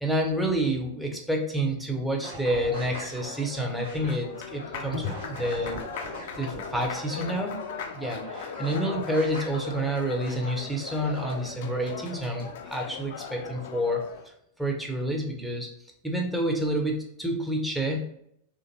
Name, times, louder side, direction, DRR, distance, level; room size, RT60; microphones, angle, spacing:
voice 1, 0.0-5.8 6.4-7.6 7.9-14.0 14.6-15.7 16.0-18.0, right 1 dB, ahead, 0 dB, 0.6 m, -29 dB
sound 1, 2.2-3.4 3.8-9.8 10.2-11.3, left 1 dB, 85° right, 1.2 m, -40 dB
Applause, 2.5-14.3, left 6 dB, 55° left, 0.3 m, -39 dB
3.3 x 2.5 x 2.8 m, 0.72 s
figure-of-eight pair, 90°, 0 cm